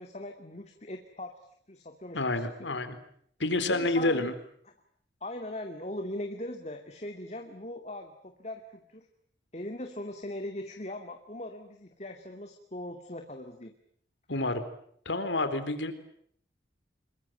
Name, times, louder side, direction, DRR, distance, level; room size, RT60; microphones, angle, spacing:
voice 1, 0.0-1.3 1.7-2.8 3.7-4.3 5.2-9.1 9.5-13.7, left 1 dB, 35° left, 4 dB, 2.4 m, -40 dB
voice 2, 2.1-3.0 3.4-4.3 14.3-14.6 15.1-15.9, left 2 dB, 90° left, 10 dB, 4.0 m, -28 dB
28.0 x 23.0 x 9.2 m, 0.67 s
head